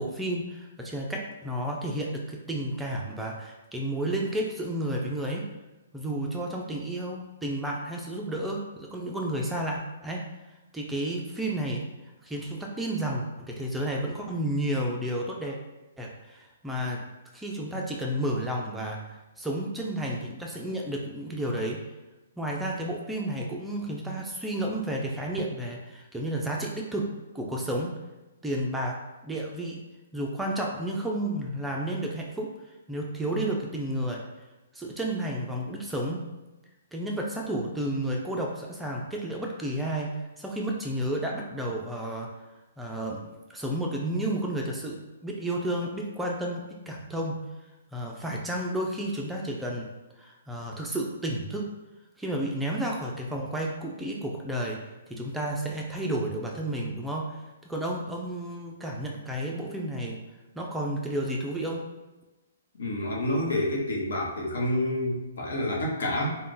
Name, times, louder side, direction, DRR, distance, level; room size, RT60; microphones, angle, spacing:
voice 1, 0.0-5.5 5.9-10.3 10.7-11.9 12.2-15.6 16.0-17.0 17.3-19.0 19.4-21.8 22.4-28.0 28.4-29.8 30.1-32.5 32.9-34.2 34.7-36.3 36.9-42.3 42.8-47.4 47.9-49.9 50.2-51.7 52.2-54.8 55.1-60.2 60.6-61.9, right 1 dB, 5° right, -2 dB, 0.4 m, -31 dB
voice 2, 62.7-66.4, left 1 dB, 75° left, -2 dB, 0.9 m, -28 dB
2.5 x 2.2 x 3.7 m, 1.1 s
hypercardioid pair, 145°, 0 cm